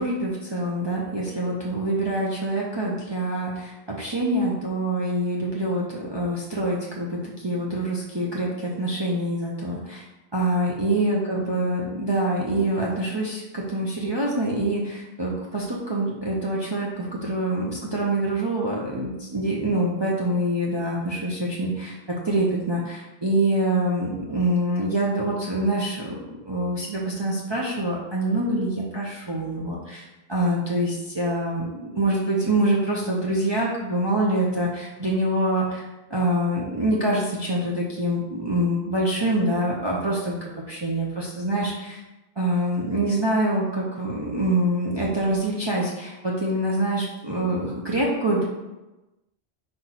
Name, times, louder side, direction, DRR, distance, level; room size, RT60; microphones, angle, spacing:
voice 1, 0.0-10.0 10.3-22.0 22.2-35.8 36.1-42.0 42.4-48.4, right 1 dB, 25° right, -4 dB, 0.8 m, -25 dB
5.1 x 4.6 x 4.2 m, 1.0 s
omnidirectional pair, 1.1 m